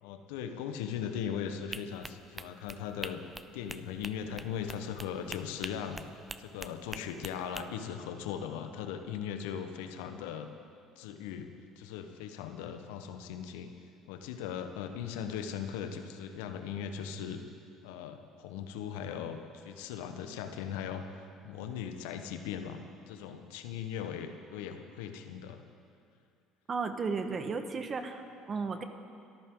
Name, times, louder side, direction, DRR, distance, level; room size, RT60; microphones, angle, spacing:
voice 1, 0.0-3.2 3.5-6.0 6.4-10.5 11.0-11.5 11.8-13.7 14.1-17.5 17.8-25.6, left 8 dB, 75° left, 7 dB, 1.2 m, -39 dB
sound 1, 1.7-7.6, right 2 dB, 15° right, 0.7 m, -44 dB
voice 2, 26.7-28.8, right 4 dB, 40° right, 7 dB, 1.5 m, -34 dB
23.5 x 13.5 x 3.9 m, 2.5 s
hypercardioid pair, 65°, 0 cm